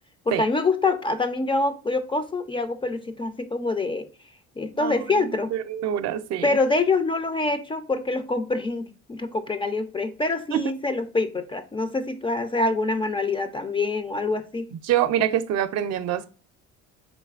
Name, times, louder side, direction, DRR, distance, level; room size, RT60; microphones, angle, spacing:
voice 1, 0.3-4.1 4.6-5.5 6.4-8.8 9.1-14.7, left 3 dB, 20° left, 0.3 m, -25 dB
voice 2, 4.8-6.5 10.5-10.6 14.8-16.3, right 10 dB, 60° right, 0.5 m, -25 dB
4.0 x 3.1 x 2.3 m
cardioid pair, 105°, 29 cm